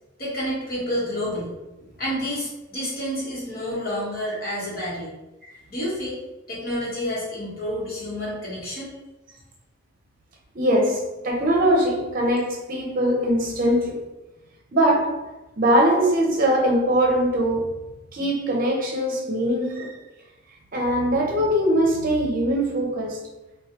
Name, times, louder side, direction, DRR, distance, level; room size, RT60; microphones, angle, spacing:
voice 1, 0.2-1.5 1.8-5.1 5.7-6.2 6.5-8.9, equal, 50° left, 1.2 m, -29 dB
voice 2, 10.5-14.0 14.7-15.2 15.6-17.7 18.1-20.0 20.7-23.2, right 1 dB, 45° right, 0.6 m, -21 dB
3.1 x 2.3 x 2.8 m
head